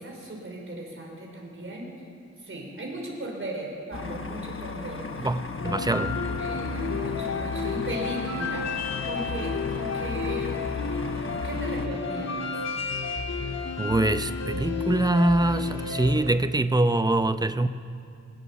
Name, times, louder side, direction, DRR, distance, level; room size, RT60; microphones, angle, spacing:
voice 1, 0.0-1.9 2.4-5.3 6.4-8.7 9.1-10.6 11.4-12.6, right 1 dB, 45° right, -1 dB, 4.4 m, -37 dB
sound 1, 3.9-11.9, left 4 dB, 45° left, 1.3 m, -37 dB
voice 2, 5.2-6.2 13.8-17.7, right 2 dB, 15° right, 10 dB, 0.7 m, -24 dB
sound 2, 5.6-16.2, left 4 dB, 60° left, 2.2 m, -31 dB
19.5 x 19.0 x 7.1 m, 2.5 s
wide cardioid pair, 120°, 30 cm